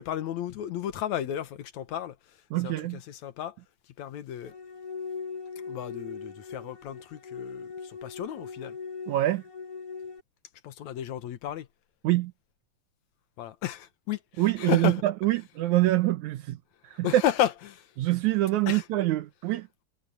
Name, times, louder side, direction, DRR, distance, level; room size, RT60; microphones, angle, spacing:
voice 1, 0.0-2.1 2.6-3.5 4.0-4.5 5.7-8.8 10.6-11.7 13.4-15.0 17.0-17.8 18.7-18.8, left 11 dB, 75° left, 2.5 m, -32 dB
voice 2, 2.5-3.0 9.1-9.4 12.0-12.3 14.4-16.6 16.9-17.2 18.0-19.7, right 16 dB, 80° right, 2.3 m, -25 dB
sound 1, 4.4-10.2, left 5 dB, 50° left, 2.5 m, -40 dB
omnidirectional pair, 3.4 m